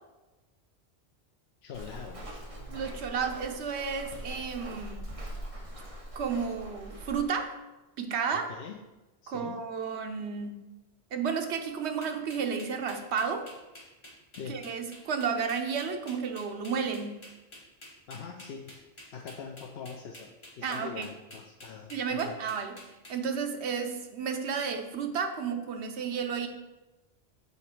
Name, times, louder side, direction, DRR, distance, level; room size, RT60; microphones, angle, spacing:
voice 1, 1.6-2.5 8.3-8.8 9.2-9.6 14.4-14.6 18.1-18.8 19.1-22.4, left 6 dB, 75° left, 1 dB, 0.9 m, -43 dB
Walk footsteps, 1.7-7.2, right 1 dB, 35° right, 1.1 m, -42 dB
voice 2, 2.7-5.1 6.1-7.6 8.0-8.5 9.3-10.5 11.1-13.5 14.5-17.2 20.6-21.1 21.9-22.8 23.1-26.5, right 6 dB, 80° right, 5 dB, 1.0 m, -32 dB
sound 1, 12.0-23.1, left 1 dB, 25° left, 1.4 m, -49 dB
7.0 x 4.0 x 4.5 m, 1.1 s
omnidirectional pair, 1.1 m